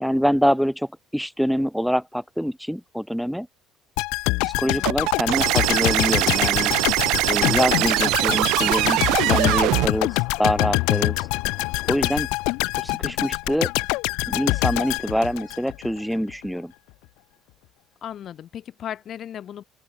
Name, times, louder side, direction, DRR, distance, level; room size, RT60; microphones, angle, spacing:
voice 1, 0.0-3.5 4.4-6.7 7.3-11.3 11.8-12.3 12.8-13.7 14.2-16.7, equal, ahead, 0.7 m, -25 dB
sound 1, 4.0-16.0 16.3-16.4, left 25 dB, 90° left, 2.5 m, -25 dB
voice 2, 4.6-4.9 18.0-19.6, left 10 dB, 45° left, 3.6 m, -36 dB
sound 2, 4.9-9.9, right 21 dB, 80° right, 0.3 m, -22 dB
sound 3, 5.2-12.0, left 17 dB, 70° left, 2.4 m, -44 dB
open air
cardioid pair, 135°, 0 cm